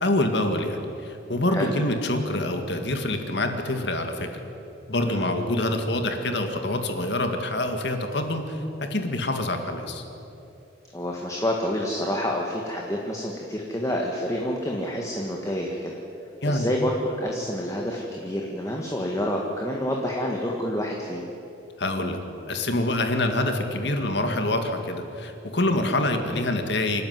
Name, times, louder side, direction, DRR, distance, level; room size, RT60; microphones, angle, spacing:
voice 1, 0.0-4.4 4.9-10.0 16.4-16.7 21.8-22.2 22.5-27.1, left 1 dB, 60° left, 5 dB, 2.0 m, -26 dB
voice 2, 10.9-15.9 16.4-21.2, equal, 15° left, 0 dB, 1.6 m, -28 dB
27.0 x 12.0 x 9.5 m, 2.9 s
head